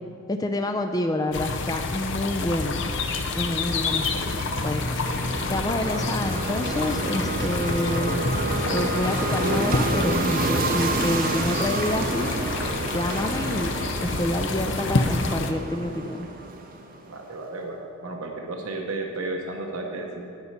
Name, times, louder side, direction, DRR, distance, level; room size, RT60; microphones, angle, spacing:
voice 1, 0.3-2.8 3.3-4.8 5.5-8.3 8.7-12.3 12.9-13.8 14.0-16.3, left 1 dB, 15° left, 5 dB, 0.4 m, -28 dB
sound 1, 1.3-15.5, left 3 dB, 55° left, 0.6 m, -28 dB
sound 2, 2.8-17.2, right 3 dB, 40° right, 0.6 m, -30 dB
sound 3, 10.1-18.0, right 1 dB, 20° right, 1.1 m, -44 dB
voice 2, 17.1-20.3, right 2 dB, 85° right, 1 dB, 1.1 m, -33 dB
10.5 x 5.5 x 7.9 m, 2.4 s
head